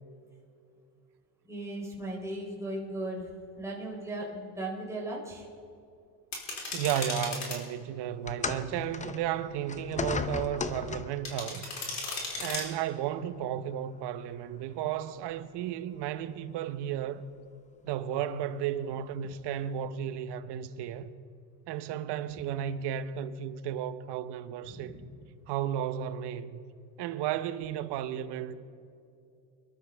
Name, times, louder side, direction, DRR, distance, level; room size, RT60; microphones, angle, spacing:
voice 1, 1.4-5.5 24.7-25.1, right 1 dB, 5° right, 3.5 m, -38 dB
sound 1, 6.3-7.6 11.2-12.6, left 3 dB, 35° left, 4.1 m, -36 dB
voice 2, 6.7-11.7 12.4-17.3 17.8-21.1 21.7-25.0 25.5-26.6 27.0-28.5, right 10 dB, 55° right, 1.0 m, -33 dB
sound 2, 8.3-11.3 12.3-12.5 13.3-13.4, left 4 dB, 15° left, 0.6 m, -35 dB
24.0 x 12.5 x 3.5 m
supercardioid pair, 105°, 48 cm